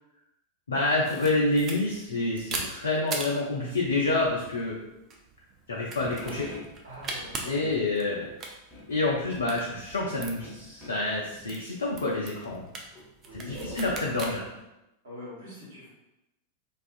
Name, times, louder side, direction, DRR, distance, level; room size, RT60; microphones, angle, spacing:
voice 1, 0.7-4.8 5.7-6.5 7.4-8.3 8.9-12.6 13.3-14.5, left 2 dB, 70° left, -3 dB, 0.4 m, -28 dB
sound 1, 1.0-14.3, right 3 dB, 30° right, 0.4 m, -41 dB
sound 2, 5.9-6.7 8.7-9.0 10.4-11.0 12.1-12.3 12.9-14.6, equal, 25° left, 1.0 m, -42 dB
voice 2, 6.8-7.8 13.2-13.5 15.0-15.9, equal, 65° right, -8 dB, 1.3 m, -43 dB
2.4 x 2.3 x 2.4 m, 0.91 s
figure-of-eight pair, 90°, 0 cm